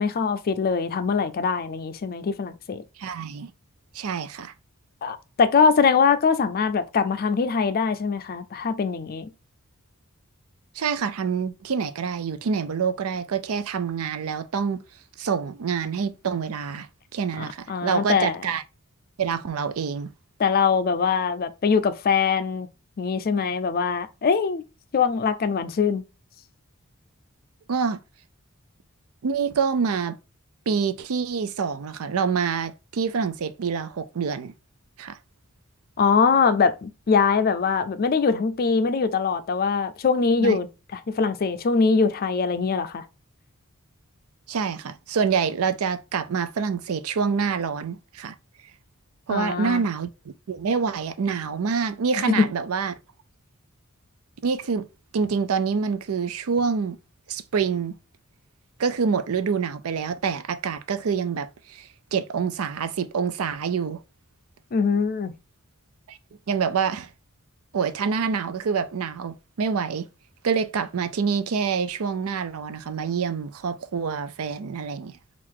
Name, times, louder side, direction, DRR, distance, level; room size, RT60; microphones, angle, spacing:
voice 1, 0.0-2.8 5.0-9.3 17.4-18.4 20.4-22.7 23.0-24.6 24.9-26.0 36.0-40.7 40.9-43.1 49.3-49.9 52.2-52.5 64.7-65.3, left 5 dB, 45° left, 0.4 m, -22 dB
voice 2, 3.0-3.5 3.9-4.5 10.8-14.8 15.2-16.9 17.1-18.6 19.2-20.1 27.7-28.0 29.2-30.2 30.7-34.5 35.0-35.2 40.4-40.6 44.5-48.3 49.3-50.1 50.5-52.9 54.4-54.9 55.1-57.0 57.3-57.9 58.8-64.0 66.1-66.2 66.5-67.1 67.7-70.1 70.4-75.1, right 6 dB, 80° right, 0.5 m, -26 dB
3.7 x 2.5 x 4.6 m
head